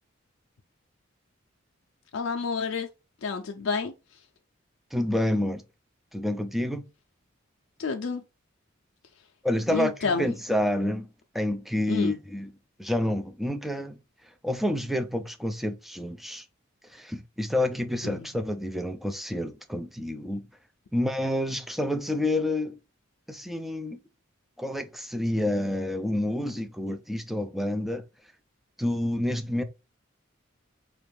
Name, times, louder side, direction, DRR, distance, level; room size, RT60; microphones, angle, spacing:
voice 1, 2.1-2.9 3.2-3.9 7.8-8.2 9.7-10.3 11.9-12.2 18.0-18.3, left 5 dB, 70° left, 0.5 m, -29 dB
voice 2, 4.9-5.6 6.1-6.8 9.4-11.1 11.3-12.5 12.8-14.0 14.4-16.5 16.9-20.5 20.9-22.8 23.3-24.0 24.6-28.0 28.8-29.6, left 1 dB, ahead, 0.4 m, -28 dB
4.3 x 2.4 x 3.4 m
head